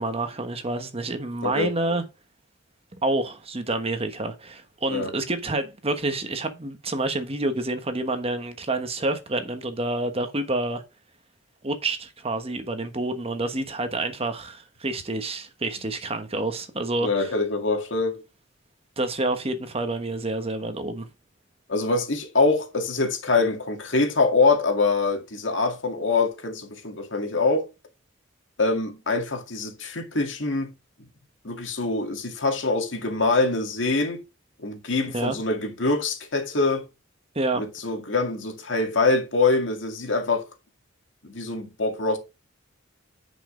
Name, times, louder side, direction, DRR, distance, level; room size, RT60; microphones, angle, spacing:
voice 1, 0.0-2.0 3.0-10.8 11.6-17.3 19.0-21.1 35.1-35.4 37.3-37.6, right 2 dB, 30° right, 1.2 m, -28 dB
voice 2, 17.0-18.2 21.7-27.7 28.6-30.7 31.4-34.2 34.6-36.9 37.5-40.5 41.2-42.2, left 3 dB, 70° left, 2.0 m, -24 dB
10.0 x 5.3 x 3.8 m
head